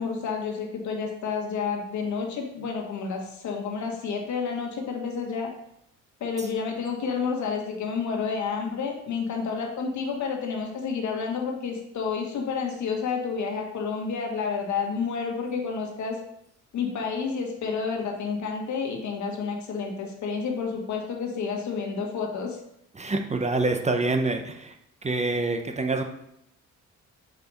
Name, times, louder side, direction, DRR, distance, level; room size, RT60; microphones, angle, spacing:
voice 1, 0.0-5.5 6.2-16.2 16.7-22.6, left 5 dB, 70° left, 1 dB, 1.5 m, -30 dB
voice 2, 22.9-24.8 25.0-26.0, right 3 dB, 20° right, 5 dB, 0.7 m, -26 dB
4.8 x 4.8 x 5.4 m, 0.77 s
cardioid pair, 90°, 30 cm